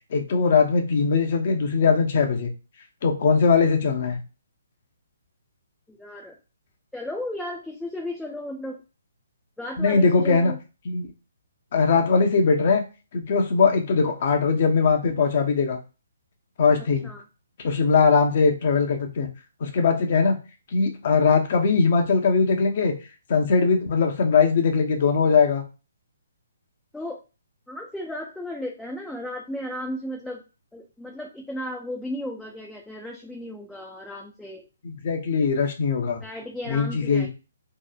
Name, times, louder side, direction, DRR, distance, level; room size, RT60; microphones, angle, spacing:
voice 1, 0.1-2.5 3.0-4.2 9.8-10.5 10.8-11.1 11.7-12.8 13.1-15.8 16.6-17.1 17.6-19.3 19.6-20.4 20.7-22.9 23.3-25.6 34.8-36.2 36.7-37.3, left 5 dB, 50° left, 4 dB, 0.6 m, -20 dB
voice 2, 5.9-6.4 6.9-8.8 9.6-10.6 17.0-17.2 26.9-27.2 27.7-30.4 30.7-34.7 36.2-37.3, left 1 dB, 5° left, -1 dB, 0.4 m, -35 dB
2.8 x 2.0 x 2.3 m, 0.31 s
hypercardioid pair, 145°, 0 cm